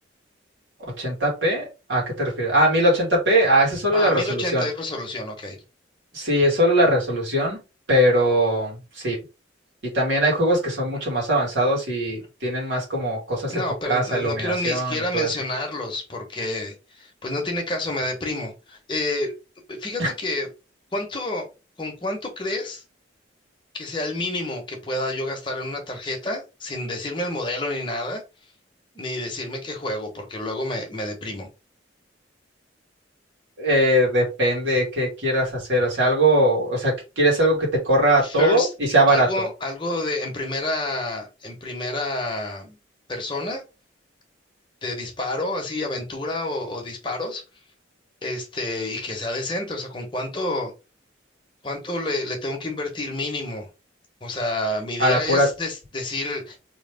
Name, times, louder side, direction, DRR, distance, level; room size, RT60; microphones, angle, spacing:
voice 1, 0.8-4.7 6.1-7.6 7.9-9.2 9.9-15.3 20.0-20.1 33.6-39.3 55.0-55.5, right 1 dB, 75° right, 2.4 m, -21 dB
voice 2, 3.9-5.6 13.5-19.3 19.7-20.5 20.9-21.5 21.8-22.8 23.7-28.2 28.9-31.5 38.2-38.7 39.1-42.8 43.1-43.6 44.8-47.4 48.2-50.7 51.6-53.7 54.2-56.6, left 2 dB, 25° left, 1.2 m, -29 dB
3.8 x 3.2 x 3.5 m
head